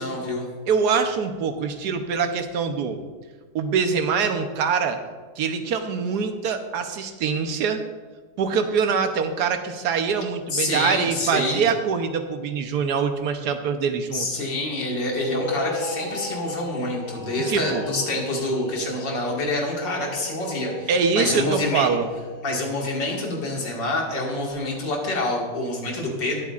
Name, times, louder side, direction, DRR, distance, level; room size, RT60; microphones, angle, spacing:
voice 1, 0.0-0.5 10.5-11.6 14.1-21.9 22.4-26.4, left 2 dB, 80° left, -1 dB, 2.7 m, -27 dB
voice 2, 0.7-3.0 3.5-5.0 5.4-7.8 8.4-14.3 17.5-17.8 20.9-22.1, right 6 dB, 65° right, 7 dB, 1.4 m, -24 dB
sound 1, 15.1-23.7, left 1 dB, 45° left, 3.5 m, -36 dB
20.5 x 8.3 x 2.5 m, 1.4 s
omnidirectional pair, 1.9 m